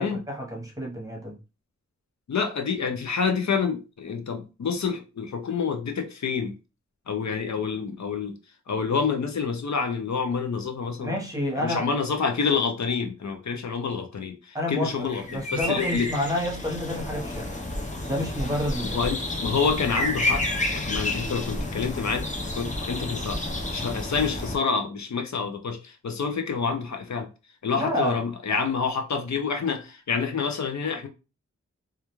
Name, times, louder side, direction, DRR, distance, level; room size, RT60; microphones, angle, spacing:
voice 1, 0.0-1.4 11.0-11.9 14.5-17.5 18.1-19.0 27.8-28.2, left 1 dB, 10° right, 0.9 m, -29 dB
voice 2, 2.3-6.5 7.1-8.3 8.7-11.2 11.6-16.1 18.8-20.4 20.7-22.3 22.5-23.4 23.7-27.3 27.6-31.1, left 5 dB, 70° left, 0.5 m, -28 dB
sound 1, 15.0-24.6, left 1 dB, 25° left, 0.6 m, -30 dB
2.4 x 2.2 x 2.9 m
wide cardioid pair, 65°, 29 cm